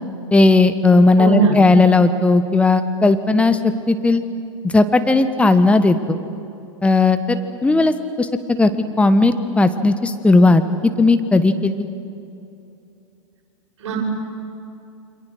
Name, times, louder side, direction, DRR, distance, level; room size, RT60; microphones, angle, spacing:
voice 1, 0.3-3.6 3.9-4.2 4.7-6.2 6.8-8.7 9.0-11.9, left 3 dB, 5° left, 10 dB, 1.3 m, -15 dB
voice 2, 1.2-1.6 13.8-14.0, right 5 dB, 60° right, -1 dB, 7.5 m, -19 dB
28.5 x 25.5 x 6.6 m, 2.6 s
figure-of-eight pair, 95°, 17 cm